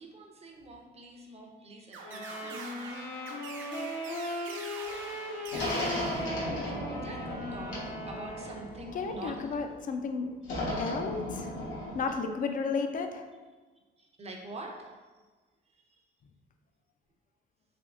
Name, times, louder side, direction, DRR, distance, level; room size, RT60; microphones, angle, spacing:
voice 1, 0.0-2.6 6.6-6.8 7.0-9.6 10.7-10.9 14.0-14.9, right 2 dB, 30° right, 1 dB, 0.6 m, -45 dB
sound 1, 1.9-7.1, right 4 dB, 75° right, 0.5 m, -45 dB
Wind instrument woodwind instrument, 2.0-8.9, left 1 dB, 70° left, 0.7 m, -38 dB
sound 2, 5.5-9.6 10.4-12.1, left 1 dB, 90° left, 1.2 m, -36 dB
voice 2, 8.9-10.3 10.8-11.6 11.9-13.3, left 4 dB, 45° left, 6 dB, 0.4 m, -33 dB
3.4 x 3.0 x 2.4 m, 1.3 s
cardioid pair, 90°, 20 cm